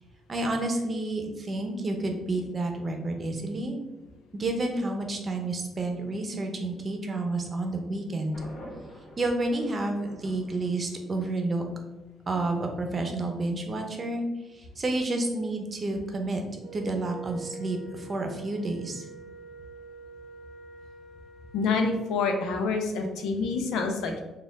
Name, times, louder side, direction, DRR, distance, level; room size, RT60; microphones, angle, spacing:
voice 1, 0.3-3.8 4.3-8.4 9.2-11.6 12.3-14.3 14.5-16.4 16.7-19.1, right 2 dB, 35° right, 4 dB, 0.7 m, -30 dB
Thunder, 8.3-11.3, equal, 65° left, 1.4 m, -46 dB
Wind instrument woodwind instrument, 16.6-22.2, right 4 dB, 15° right, 1.0 m, -45 dB
voice 2, 21.5-24.2, left 4 dB, 90° left, 4 dB, 0.6 m, -27 dB
4.2 x 2.4 x 3.6 m, 1.1 s
cardioid pair, 90°, 0 cm